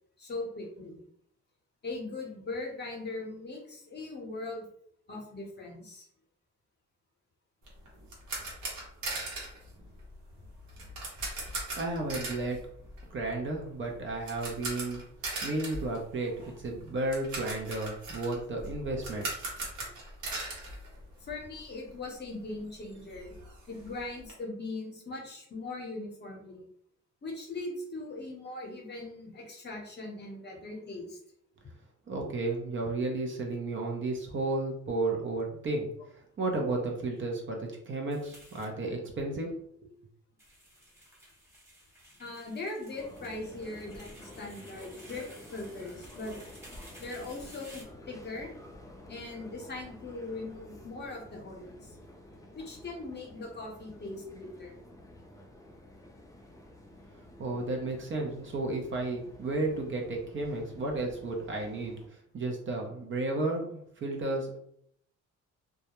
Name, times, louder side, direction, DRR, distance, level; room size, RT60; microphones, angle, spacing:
voice 1, 0.2-1.0 1.8-4.6 5.1-6.1 21.2-23.3 23.7-26.6 27.2-31.2 42.2-46.3 47.0-48.5 49.1-52.0 52.5-54.8, left 2 dB, 35° left, 0 dB, 0.8 m, -40 dB
sound 1, 7.6-21.6 21.9-22.0 22.4-22.5 22.8-24.3, right 2 dB, 70° right, 0.9 m, -40 dB
voice 2, 11.4-12.6 13.1-15.0 15.4-19.3 32.1-35.9 36.4-39.5 39.8-39.9 57.4-62.0 62.3-64.6, right 2 dB, 40° right, 1 dB, 0.6 m, -33 dB
sound 2, 38.1-38.6 40.4-47.8, equal, 10° right, 0.8 m, -54 dB
sound 3, 43.0-62.1, left 1 dB, 10° left, 0.4 m, -51 dB
2.3 x 2.0 x 2.9 m, 0.68 s
cardioid pair, 90°, 30 cm